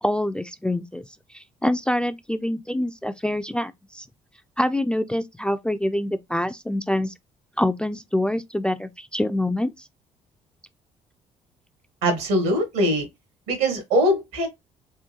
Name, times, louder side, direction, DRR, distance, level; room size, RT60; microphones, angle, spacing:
voice 1, 0.0-4.1 4.6-7.1 7.6-9.9, left 1 dB, 5° left, 0.3 m, -26 dB
voice 2, 12.0-13.1 13.5-14.5, equal, 75° right, 1.1 m, -22 dB
3.6 x 2.3 x 2.8 m
hypercardioid pair, 50°, 15 cm